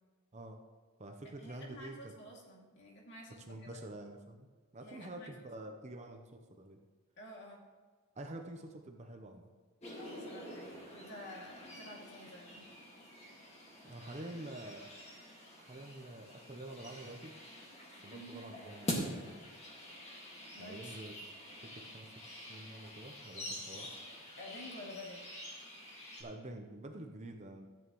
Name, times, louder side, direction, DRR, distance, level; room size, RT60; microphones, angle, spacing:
voice 1, 0.3-0.6 1.0-2.1 3.5-4.5 4.7-6.8 8.2-9.5 13.8-15.0 15.6-17.3 18.0-19.4 20.6-21.2 21.6-22.1 22.5-23.9 26.2-27.7, right 1 dB, 30° right, 4 dB, 0.8 m, -47 dB
voice 2, 1.4-3.4 3.7-3.8 4.8-5.3 7.2-7.6 10.0-12.7 18.1-18.5 20.5-21.0 24.4-25.3, left 1 dB, 50° left, -2 dB, 2.5 m, -50 dB
sound 1, 9.8-26.2, left 1 dB, 30° left, 1.9 m, -46 dB
14.0 x 9.0 x 3.1 m, 1.4 s
head